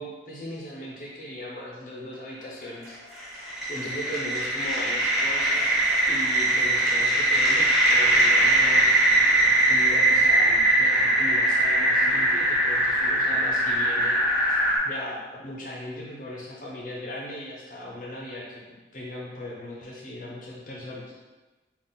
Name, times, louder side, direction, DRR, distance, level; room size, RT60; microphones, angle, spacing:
voice 1, 0.0-2.9 3.6-5.8 6.1-8.9 9.7-14.6 14.8-18.6 18.9-21.1, left 1 dB, 45° left, -4 dB, 0.6 m, -38 dB
sound 1, 2.8-14.8, right 1 dB, ahead, 1.3 m, -21 dB
3.8 x 2.4 x 3.9 m, 1.2 s
head